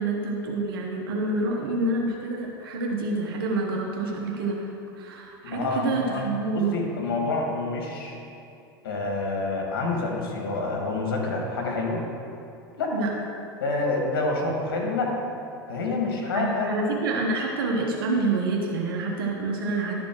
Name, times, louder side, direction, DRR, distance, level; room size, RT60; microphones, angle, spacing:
voice 1, 0.0-6.7 12.9-13.1 16.3-19.9, right 3 dB, 75° right, -1 dB, 1.0 m, -27 dB
voice 2, 5.4-6.2 6.5-8.2 8.8-12.0 12.8-13.0 13.6-15.2 15.7-16.7, left 3 dB, 75° left, 0 dB, 1.7 m, -27 dB
11.5 x 4.2 x 4.6 m, 2.6 s
hypercardioid pair, 90°, 12 cm